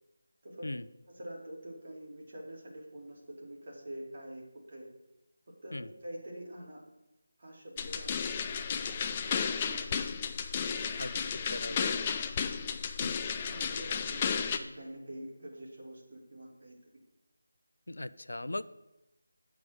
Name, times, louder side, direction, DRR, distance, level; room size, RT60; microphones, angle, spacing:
voice 1, 1.1-4.9 5.6-6.8 7.4-10.0 10.5-11.9 12.4-12.8 13.4-16.8, right 1 dB, 50° right, -2 dB, 2.4 m, -46 dB
sound 1, 7.8-14.6, left 6 dB, 20° left, 0.4 m, -33 dB
voice 2, 11.0-11.9 13.0-13.2 17.9-18.6, left 2 dB, 85° left, 15 dB, 0.4 m, -39 dB
8.0 x 5.9 x 5.1 m, 0.92 s
figure-of-eight pair, 170°, 0 cm